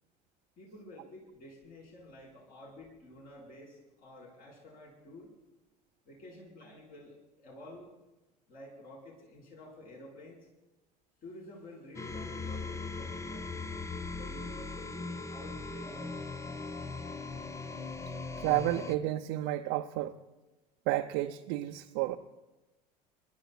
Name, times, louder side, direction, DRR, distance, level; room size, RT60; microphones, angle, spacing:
voice 1, 0.6-5.3 6.0-7.9 8.5-10.5 11.2-13.5 14.1-16.2, left 1 dB, 45° left, -3 dB, 4.6 m, -50 dB
sound 1, 11.9-19.0, left 3 dB, 15° left, 0.6 m, -39 dB
voice 2, 18.4-20.1 20.9-22.2, right 15 dB, 55° right, 4 dB, 0.6 m, -31 dB
29.5 x 12.0 x 2.3 m, 1.1 s
figure-of-eight pair, 65°, 21 cm